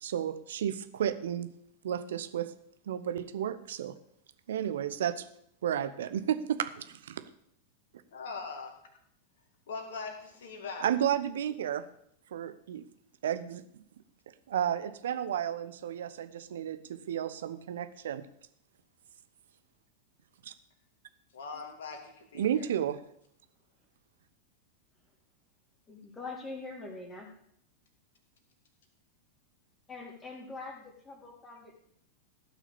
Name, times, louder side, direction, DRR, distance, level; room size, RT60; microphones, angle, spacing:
voice 1, 0.0-1.5 1.8-2.5 2.9-3.9 4.5-5.3 5.6-7.2 10.8-11.8 12.3-12.8 13.2-13.8 14.5-18.3 20.4-20.5 22.3-23.0, right 10 dB, 60° right, 12 dB, 0.9 m, -32 dB
voice 2, 8.1-8.8 9.7-10.9 21.3-22.7, left 4 dB, 60° left, 4 dB, 2.7 m, -41 dB
voice 3, 25.9-27.3 29.9-31.8, left 3 dB, 20° left, 0 dB, 3.5 m, -43 dB
15.5 x 6.1 x 7.1 m, 0.71 s
figure-of-eight pair, 90°, 0 cm